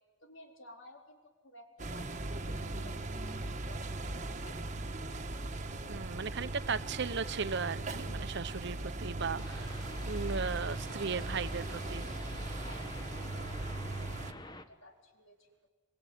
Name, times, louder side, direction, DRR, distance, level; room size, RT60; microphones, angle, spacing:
voice 1, 0.2-2.1 2.4-4.2 4.5-4.7 12.6-15.5, left 1 dB, 65° left, 3 dB, 4.1 m, -56 dB
sound 1, 1.8-14.3, right 2 dB, 35° right, 1.4 m, -39 dB
voice 2, 5.9-12.0, right 5 dB, 60° right, 14 dB, 0.9 m, -37 dB
sound 2, 9.4-14.6, left 2 dB, 20° left, 1.3 m, -48 dB
25.5 x 22.0 x 9.3 m, 1.4 s
head